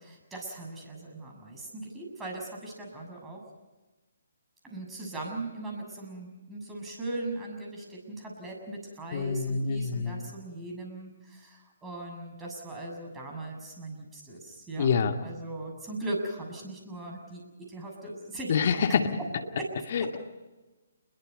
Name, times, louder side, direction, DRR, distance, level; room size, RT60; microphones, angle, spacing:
voice 1, 0.0-3.4 4.6-14.9 15.2-17.4 17.7-18.8 19.5-19.7, right 2 dB, 10° right, 0 dB, 7.0 m, -39 dB
voice 2, 9.1-10.3 14.8-15.1 18.5-19.1 19.9-20.2, left 6 dB, 50° left, 6 dB, 2.4 m, -26 dB
29.0 x 22.0 x 5.5 m, 1.2 s
figure-of-eight pair, 140°, 0 cm